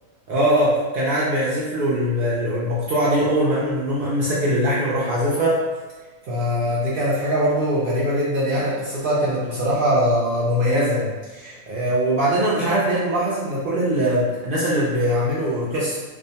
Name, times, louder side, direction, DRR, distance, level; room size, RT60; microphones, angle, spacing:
voice 1, 0.3-5.6 6.2-16.0, equal, 75° right, -7 dB, 0.4 m, -21 dB
2.4 x 2.2 x 2.7 m, 1.2 s
omnidirectional pair, 1.5 m